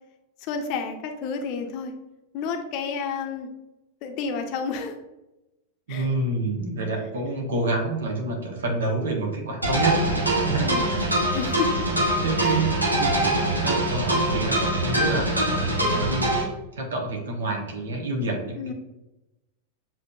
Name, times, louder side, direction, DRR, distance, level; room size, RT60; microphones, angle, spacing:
voice 1, 0.5-1.9 2.3-3.5 4.0-4.9 5.9-6.1 10.6-11.0 11.3-11.8 12.4-12.7 18.6-18.7, left 5 dB, 45° left, 4 dB, 0.6 m, -30 dB
voice 2, 5.9-11.3 11.9-18.7, right 2 dB, 65° right, 1 dB, 1.0 m, -28 dB
sound 1, 9.6-16.4, right 1 dB, 90° right, 1.0 m, -23 dB
7.2 x 2.9 x 2.3 m, 0.97 s
figure-of-eight pair, 90°, 0 cm